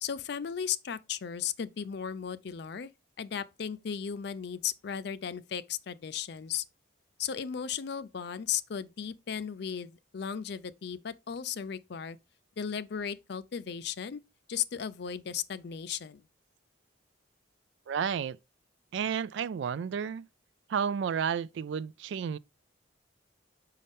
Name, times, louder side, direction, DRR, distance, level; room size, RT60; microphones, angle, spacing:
voice 1, 0.0-2.9 3.2-6.6 7.2-12.2 12.6-14.2 14.5-16.2, left 8 dB, 55° left, 0.4 m, -36 dB
voice 2, 17.9-18.4 18.9-20.3 20.7-22.4, right 7 dB, 65° right, 0.3 m, -31 dB
5.6 x 5.2 x 3.5 m
head